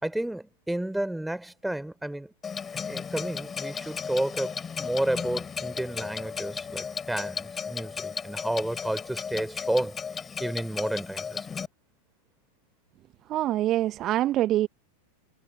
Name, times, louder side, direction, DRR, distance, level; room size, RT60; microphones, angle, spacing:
voice 1, 0.0-2.3 2.9-10.0 10.4-11.5, right 1 dB, 5° right, 4.1 m, -31 dB
Clock, 2.4-11.7, left 6 dB, 20° left, 5.6 m, -35 dB
voice 2, 13.3-14.7, right 14 dB, 35° right, 1.2 m, -25 dB
figure-of-eight pair, 90°, 0 cm